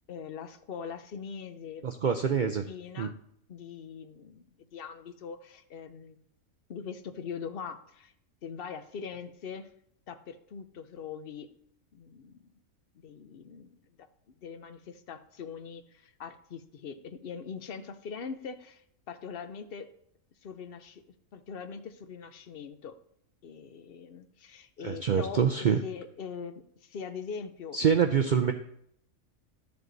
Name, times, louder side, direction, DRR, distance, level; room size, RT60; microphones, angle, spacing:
voice 1, 0.1-1.9 2.2-3.2 3.5-6.2 6.7-8.1 8.4-9.7 10.1-11.5 11.9-12.4 12.9-13.8 14.4-19.9 20.4-21.0 21.3-23.0 23.4-25.4 25.8-28.1, left 6 dB, 50° left, 10 dB, 0.8 m, -42 dB
voice 2, 1.8-2.6 3.0-3.1 24.8-25.8 27.7-28.5, right 7 dB, 60° right, 6 dB, 0.5 m, -25 dB
12.0 x 6.9 x 4.0 m, 0.71 s
omnidirectional pair, 1.4 m